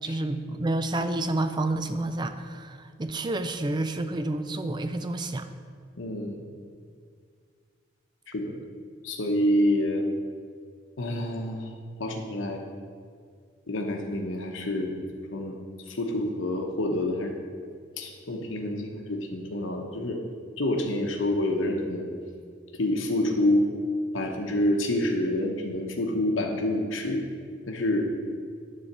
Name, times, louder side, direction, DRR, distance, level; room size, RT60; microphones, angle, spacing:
voice 1, 0.0-5.5, right 2 dB, 25° right, 9 dB, 0.4 m, -29 dB
voice 2, 6.0-6.4 8.3-8.5 9.0-10.0 11.0-11.7 12.0-12.6 13.7-14.9 15.3-15.6 15.9-17.3 18.0-20.2 20.6-22.1 22.7-23.7 24.1-27.2 27.7-28.1, left 1 dB, 85° left, 1 dB, 0.9 m, -27 dB
10.0 x 4.1 x 6.7 m, 2.1 s
head